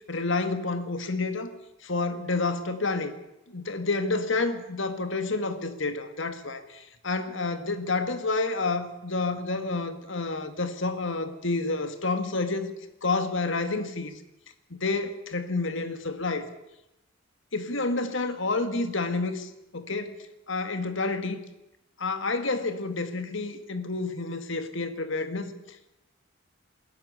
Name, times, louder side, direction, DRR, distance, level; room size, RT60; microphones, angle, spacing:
voice 1, 0.1-1.5 1.8-3.1 3.5-12.7 13.0-14.1 14.7-16.5 17.5-20.2 20.5-21.4 22.0-25.9, left 3 dB, 60° left, 2.0 m, -29 dB
21.5 x 13.5 x 9.8 m
head